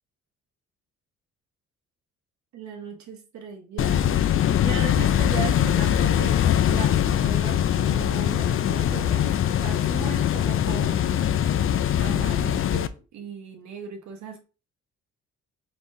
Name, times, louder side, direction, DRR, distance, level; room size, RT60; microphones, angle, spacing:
voice 1, 2.5-9.3 9.6-11.2 11.9-14.4, right 7 dB, 70° right, 1.1 m, -38 dB
sound 1, 3.8-12.9, left 10 dB, 45° left, 0.4 m, -22 dB
5.0 x 3.7 x 2.6 m
cardioid pair, 90°, 30 cm